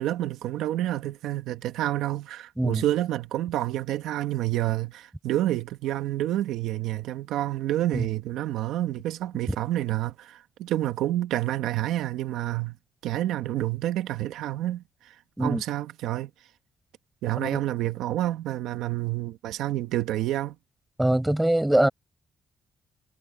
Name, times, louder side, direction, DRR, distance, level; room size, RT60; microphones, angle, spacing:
voice 1, 0.0-12.8 13.0-16.3 17.2-20.6, right 14 dB, 90° right, 1.7 m, -29 dB
voice 2, 21.0-21.9, right 1 dB, 10° right, 5.6 m, -23 dB
cardioid pair, 90°, 0 cm